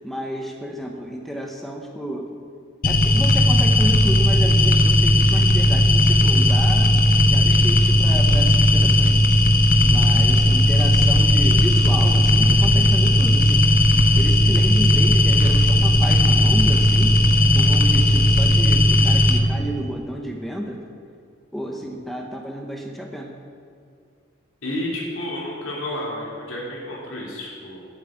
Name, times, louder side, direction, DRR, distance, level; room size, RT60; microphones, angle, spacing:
voice 1, 0.0-2.3 2.8-7.0 7.2-9.3 9.8-13.6 14.1-17.1 17.5-20.8 21.5-23.3, equal, ahead, 1 dB, 0.8 m, -31 dB
sound 1, 2.8-19.4, left 1 dB, 45° left, 0.8 m, -16 dB
sound 2, 6.2-18.3, equal, 80° right, 1.8 m, -36 dB
voice 2, 24.6-27.8, left 1 dB, 85° left, -3 dB, 3.0 m, -31 dB
8.2 x 7.9 x 8.7 m, 2.3 s
head